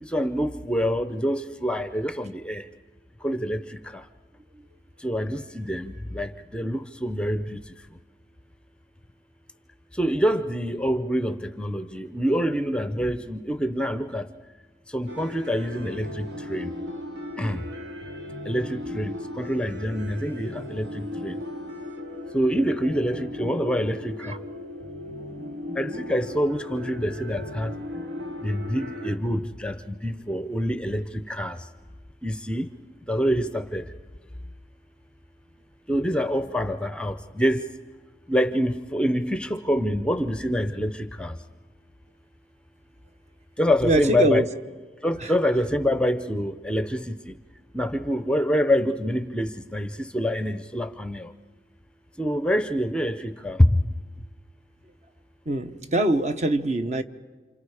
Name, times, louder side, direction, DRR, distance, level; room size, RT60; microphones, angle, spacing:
voice 1, 0.0-2.7 3.2-4.0 5.0-7.6 10.0-14.3 14.9-16.7 17.4-17.6 18.5-21.4 22.3-24.4 25.7-27.7 28.4-31.6 32.2-32.7 33.1-33.9 35.9-37.7 38.3-41.3 43.6-44.5 45.0-47.3 47.7-51.3 52.2-53.8, equal, 5° left, 10 dB, 0.6 m, -26 dB
sound 1, 15.1-29.2, left 1 dB, 85° right, 2.5 m, -37 dB
voice 2, 43.8-44.5 45.2-45.3 55.5-57.0, right 1 dB, 40° right, 9 dB, 1.0 m, -23 dB
29.5 x 27.0 x 4.9 m, 1.4 s
head